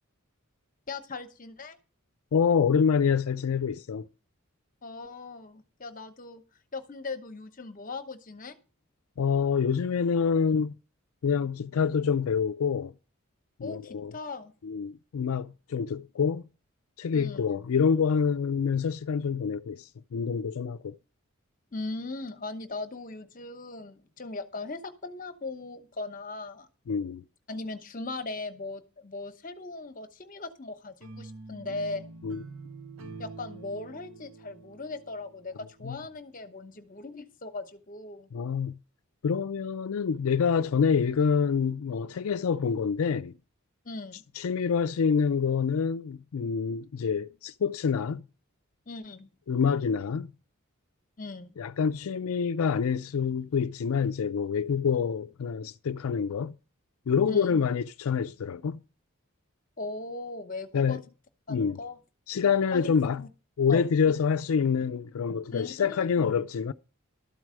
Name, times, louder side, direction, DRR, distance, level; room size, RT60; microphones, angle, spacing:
voice 1, 0.9-1.8 4.8-6.4 6.7-8.6 13.6-14.5 17.1-17.5 21.7-26.7 27.5-32.1 33.2-38.3 43.8-44.2 48.9-49.3 51.2-51.6 57.3-57.6 59.8-61.0 61.5-62.0 62.7-62.9 63.2-63.3 63.7-63.8 65.5-66.3, left 3 dB, 40° left, 1.0 m, -39 dB
voice 2, 2.3-4.1 9.2-10.7 11.2-12.9 13.6-14.1 14.6-16.4 17.0-21.0 26.9-27.2 32.2-32.4 35.8-36.0 38.3-38.8 39.2-43.3 44.4-48.3 49.5-50.3 51.6-56.6 57.1-58.8 60.7-61.0 61.5-61.8 62.3-63.2 63.6-66.7, left 6 dB, 80° left, 0.4 m, -26 dB
sound 1, 31.0-36.1, right 3 dB, 70° right, 0.8 m, -46 dB
12.5 x 4.7 x 7.5 m
head